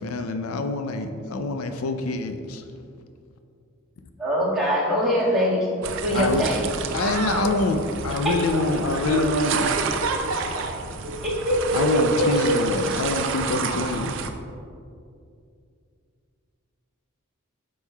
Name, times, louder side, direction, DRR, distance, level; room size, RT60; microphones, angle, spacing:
voice 1, 0.0-2.6 6.1-6.5 6.9-9.8 11.7-14.2, left 2 dB, 85° left, 7 dB, 0.5 m, -25 dB
voice 2, 4.2-5.6 6.0-6.6 11.4-12.5, equal, ahead, -10 dB, 1.7 m, -22 dB
sound 1, 5.8-14.3, right 5 dB, 60° right, 0.5 m, -30 dB
voice 3, 6.8-7.7 8.5-11.0, right 2 dB, 75° right, 3 dB, 0.9 m, -30 dB
9.8 x 6.4 x 2.3 m, 2.4 s
head